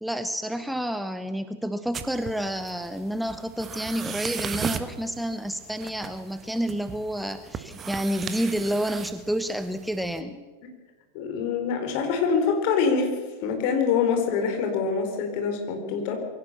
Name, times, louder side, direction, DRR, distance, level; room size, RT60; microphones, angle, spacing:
voice 1, 0.0-10.4, equal, ahead, 11 dB, 0.9 m, -29 dB
sound 1, 1.9-10.2, right 7 dB, 25° right, 1.5 m, -37 dB
voice 2, 11.1-13.1 13.4-16.2, left 5 dB, 45° left, 4 dB, 4.5 m, -25 dB
22.5 x 16.5 x 6.9 m, 1.4 s
figure-of-eight pair, 90°, 0 cm